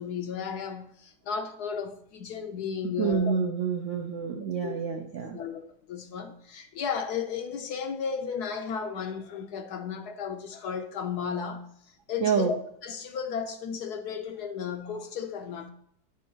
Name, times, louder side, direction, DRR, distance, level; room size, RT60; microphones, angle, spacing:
voice 1, 0.0-3.3 4.6-4.7 5.3-12.5 12.8-15.7, left 6 dB, 70° left, 1.1 m, -34 dB
voice 2, 3.0-5.4 12.2-12.5, right 6 dB, 65° right, 0.7 m, -28 dB
9.7 x 6.3 x 2.8 m
omnidirectional pair, 2.0 m